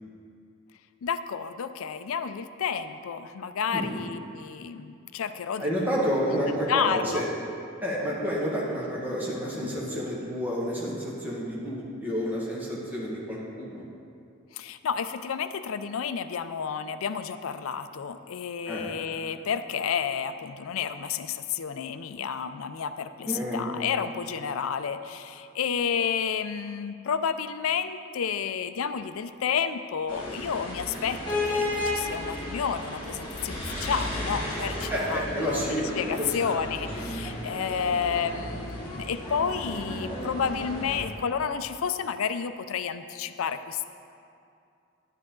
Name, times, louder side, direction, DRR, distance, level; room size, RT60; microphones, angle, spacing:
voice 1, 1.0-5.7 6.7-7.2 14.5-43.8, left 7 dB, 80° left, 10 dB, 0.4 m, -31 dB
voice 2, 5.6-7.2 7.8-13.8 18.7-18.9 23.3-23.7 34.9-36.6, equal, 10° right, -6 dB, 1.6 m, -30 dB
sound 1, 30.1-41.0, left 1 dB, 20° left, 2.2 m, -33 dB
10.5 x 9.8 x 3.8 m, 2.5 s
head